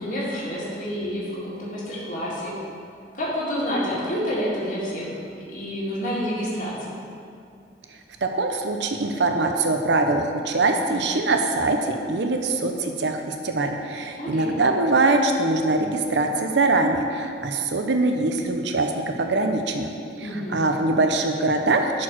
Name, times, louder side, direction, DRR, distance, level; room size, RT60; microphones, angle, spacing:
voice 1, 0.0-2.5 3.1-5.1 5.4-6.9 14.2-14.5 20.2-20.6, equal, 45° left, -7 dB, 2.0 m, -28 dB
voice 2, 8.2-19.9 20.2-22.0, right 2 dB, 70° right, 4 dB, 0.7 m, -23 dB
10.5 x 4.6 x 6.1 m, 2.4 s
head